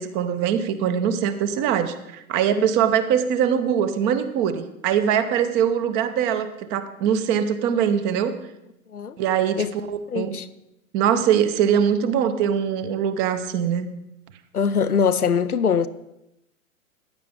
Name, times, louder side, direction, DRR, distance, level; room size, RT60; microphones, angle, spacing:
voice 1, 0.0-8.3 9.2-10.3 10.9-13.9, right 8 dB, 25° right, 0.7 m, -22 dB
voice 2, 10.1-10.5 14.5-15.9, left 6 dB, 90° left, 0.6 m, -22 dB
15.0 x 9.5 x 3.6 m
figure-of-eight pair, 105°, 44 cm